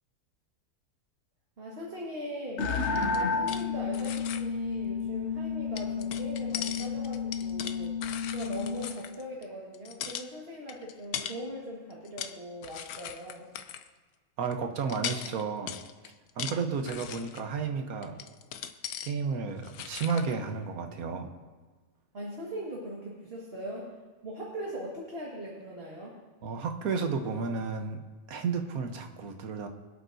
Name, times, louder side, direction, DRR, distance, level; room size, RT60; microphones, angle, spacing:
voice 1, 1.6-8.0 8.3-13.5 22.1-23.9 24.2-26.1, equal, 40° right, -3 dB, 2.0 m, -40 dB
sound 1, 2.6-3.7 3.9-4.4 5.8-9.4 9.7-10.3 10.7-11.4 11.9-12.4 12.6-13.9 14.5-14.6 14.9-17.5 18.0-19.1 19.5-20.3, left 9 dB, 90° left, 1.2 m, -39 dB
sound 2, 2.6-8.9, left 5 dB, 55° left, 1.1 m, -31 dB
voice 2, 14.4-15.8 16.4-18.2 19.0-21.3 26.4-28.0 28.3-29.7, right 5 dB, 80° right, 6 dB, 1.5 m, -32 dB
24.5 x 8.3 x 2.7 m, 1.3 s
omnidirectional pair, 1.5 m